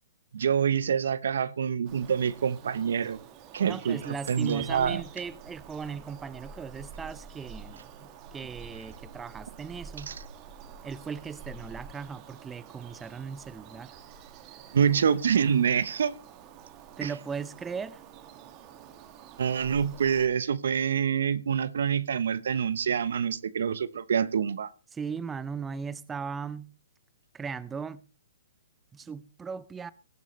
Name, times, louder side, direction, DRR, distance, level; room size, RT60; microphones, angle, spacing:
voice 1, 0.3-3.2 3.5-5.0 10.1-10.2 14.7-16.1 17.0-17.1 19.4-24.7, right 7 dB, 70° right, 0.9 m, -26 dB
Bird vocalization bird call bird song, 1.8-20.3, right 7 dB, 30° right, 2.0 m, -47 dB
voice 2, 3.6-10.1 10.8-14.0 17.0-18.0 24.9-26.7 27.3-28.0 28.9-29.9, right 6 dB, 15° right, 0.5 m, -38 dB
18.5 x 12.0 x 3.2 m
hypercardioid pair, 130°, 0 cm